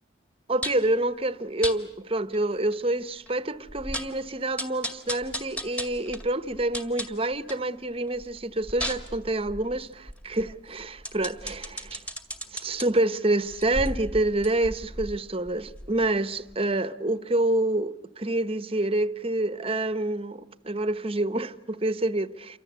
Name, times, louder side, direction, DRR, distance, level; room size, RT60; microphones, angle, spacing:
voice 1, 0.5-12.0 12.5-22.6, right 2 dB, 30° right, 1.1 m, -27 dB
sound 1, 0.6-0.9 1.6-1.8 2.3-2.4 2.7-2.8 3.3-3.4 3.7-4.2 4.6-7.7 8.1-12.9 13.5-16.2 16.5-16.6, equal, 5° left, 2.1 m, -36 dB
29.0 x 25.0 x 8.2 m
head